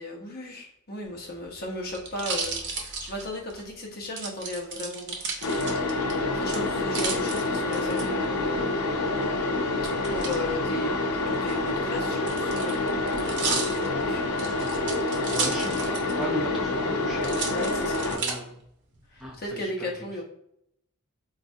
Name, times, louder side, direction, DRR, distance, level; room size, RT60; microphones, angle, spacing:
voice 1, 0.0-5.7 6.3-8.8 10.1-13.2 13.9-14.2 17.4-18.4 19.1-20.2, left 1 dB, 45° left, -1 dB, 0.9 m, -36 dB
sound 1, 1.1-3.6 4.2-6.1 6.5-8.0 9.8-10.4 11.3-16.2 16.5-16.6 17.2-18.3 19.0-19.5, right 4 dB, 55° right, 0.8 m, -33 dB
sound 2, 5.4-18.2, left 2 dB, 85° left, 0.5 m, -27 dB
voice 2, 15.2-17.4 18.0-18.6 19.2-19.9, equal, ahead, -4 dB, 0.6 m, -36 dB
4.3 x 2.4 x 2.6 m, 0.75 s
head